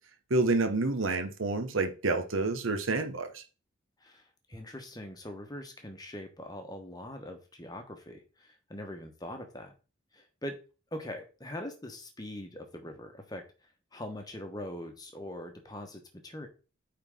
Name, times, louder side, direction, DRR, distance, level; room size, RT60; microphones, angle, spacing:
voice 1, 0.3-3.4, right 3 dB, 70° right, 1.1 m, -28 dB
voice 2, 4.5-9.7 10.1-10.6 10.9-13.4 13.9-16.5, left 1 dB, 20° left, 1.1 m, -42 dB
8.8 x 3.8 x 3.7 m
head